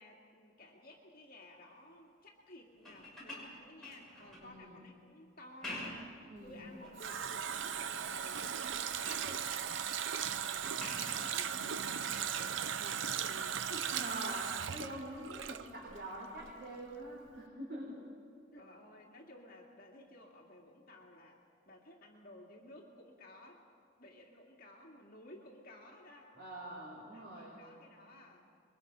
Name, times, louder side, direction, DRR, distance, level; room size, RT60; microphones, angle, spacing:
voice 1, 0.0-14.0 18.5-21.4 21.7-23.6 24.0-26.3 27.1-28.5, left 1 dB, 50° left, -1 dB, 2.3 m, -55 dB
sound 1, 2.7-4.5 5.4-6.2 6.7-7.3 7.8-8.3 8.6-9.3 10.8-11.3 13.1-13.2, left 1 dB, 5° left, 6.4 m, -47 dB
voice 2, 4.3-4.8 6.3-6.7 10.4-10.8 13.9-18.0 26.3-27.6, right 1 dB, 55° right, -4 dB, 4.3 m, -45 dB
Water tap faucet, 6.5-16.1 16.4-16.5, right 8 dB, 80° right, 0.7 m, -38 dB
27.0 x 22.5 x 5.5 m, 2.4 s
head